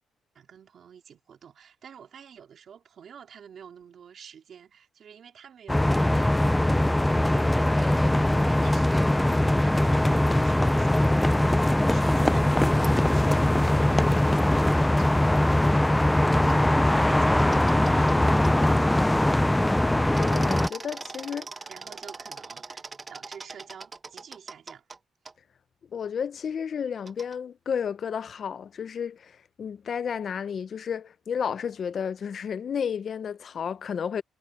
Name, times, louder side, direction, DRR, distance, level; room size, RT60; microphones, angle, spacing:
voice 1, 0.3-11.2 11.5-16.1 16.4-18.5 21.7-22.8 23.1-24.9, right 8 dB, 60° right, 3.2 m, -48 dB
sound 1, 5.7-20.7, left 1 dB, 10° left, 0.3 m, -21 dB
sound 2, 17.4-18.2 18.4-18.5 20.2-25.0 25.3-25.4 27.1-27.4, right 3 dB, 30° right, 1.3 m, -41 dB
voice 2, 20.2-21.7 25.9-34.2, left 7 dB, 50° left, 0.7 m, -32 dB
cardioid pair, 90°, 0 cm